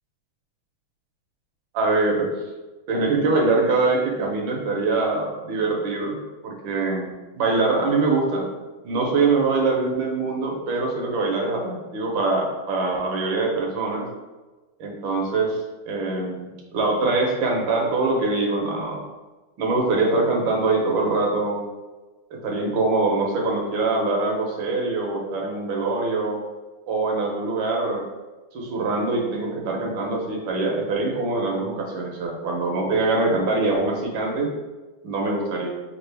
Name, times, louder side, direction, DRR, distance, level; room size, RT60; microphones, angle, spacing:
voice 1, 1.7-2.3 2.9-6.2 6.4-8.5 8.8-14.1 14.8-15.6 15.9-19.0 19.6-21.6 22.3-26.4 26.9-28.0 28.5-34.5 35.0-35.7, right 3 dB, 70° right, 0 dB, 1.5 m, -23 dB
5.9 x 2.4 x 3.3 m, 1.2 s
omnidirectional pair, 2.3 m